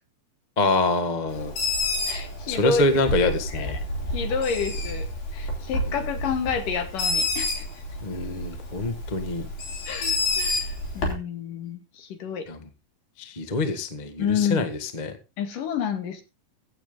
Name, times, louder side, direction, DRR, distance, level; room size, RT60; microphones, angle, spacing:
voice 1, 0.6-1.5 2.5-3.8 8.0-9.5 12.5-12.6 13.2-15.1, left 2 dB, 35° left, 9 dB, 0.6 m, -25 dB
Bird, 1.3-11.1, left 2 dB, 90° left, 5.9 m, -29 dB
voice 2, 2.1-2.9 3.2-3.7 4.1-7.7 9.9-12.5 14.2-14.7 15.4-16.2, left 6 dB, 70° left, 8 dB, 3.6 m, -29 dB
16.5 x 9.0 x 3.8 m, 0.28 s
omnidirectional pair, 4.0 m